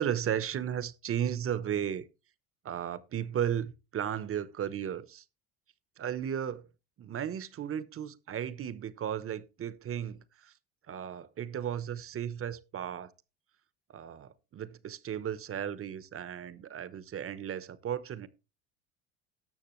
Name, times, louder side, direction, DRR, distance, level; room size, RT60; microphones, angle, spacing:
voice 1, 0.0-2.1 2.6-5.2 6.0-6.7 7.0-10.5 10.9-13.1 13.9-18.3, right 9 dB, 40° right, 1.1 m, -35 dB
18.5 x 6.5 x 3.2 m
supercardioid pair, 90°, 34 cm